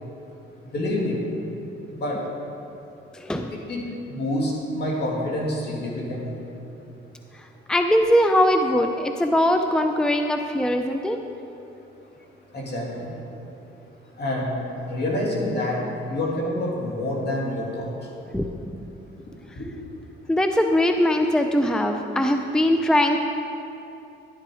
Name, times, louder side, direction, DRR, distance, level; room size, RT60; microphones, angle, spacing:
voice 1, 0.6-1.3 1.9-2.3 3.5-6.4 12.5-13.1 14.2-17.9 19.6-19.7, left 1 dB, 55° left, -2 dB, 2.8 m, -27 dB
voice 2, 3.1-3.5 7.7-11.2 18.3-18.5 20.3-23.2, left 1 dB, 5° left, 5 dB, 0.6 m, -21 dB
11.5 x 10.5 x 4.9 m, 2.9 s
cardioid pair, 90°, 20 cm